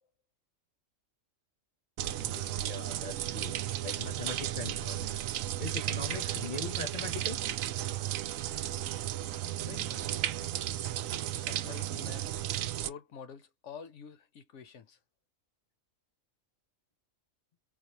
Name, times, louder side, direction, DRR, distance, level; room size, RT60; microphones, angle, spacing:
sound 1, 2.0-12.9, right 12 dB, 80° right, 0.9 m, -34 dB
voice 1, 2.2-3.6 3.8-5.3 5.6-7.4, left 4 dB, 45° left, 0.8 m, -41 dB
voice 2, 9.6-10.2 11.4-12.3 12.8-15.0, left 6 dB, 65° left, 1.0 m, -48 dB
4.6 x 2.3 x 2.8 m
omnidirectional pair, 1.4 m